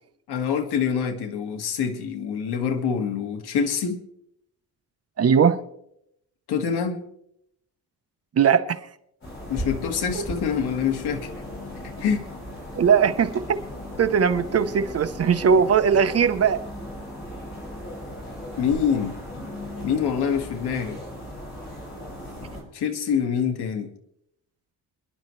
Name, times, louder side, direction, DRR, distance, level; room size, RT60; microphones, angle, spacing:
voice 1, 0.3-4.0 6.5-7.1 9.5-11.3 12.0-12.2 18.6-19.1 19.8-21.0 22.7-23.9, left 7 dB, 85° left, 1.7 m, -25 dB
voice 2, 5.2-5.6 8.3-8.8 10.1-10.2 12.8-13.6 14.0-16.6, right 7 dB, 40° right, 0.8 m, -19 dB
sound 1, 9.2-22.6, left 1 dB, 35° left, 6.5 m, -37 dB
28.5 x 11.0 x 3.2 m
wide cardioid pair, 160°, 38 cm